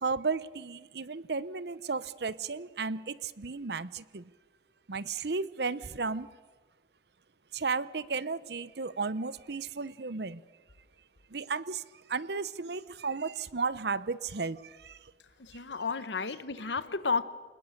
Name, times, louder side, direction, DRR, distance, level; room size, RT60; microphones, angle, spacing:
voice 1, 0.0-4.3 4.9-6.3 7.5-10.4 11.3-11.8 12.1-15.0, right 4 dB, 65° right, 17 dB, 0.8 m, -34 dB
voice 2, 15.4-17.2, left 4 dB, 85° left, 14 dB, 1.1 m, -32 dB
27.5 x 20.0 x 6.6 m, 1.4 s
head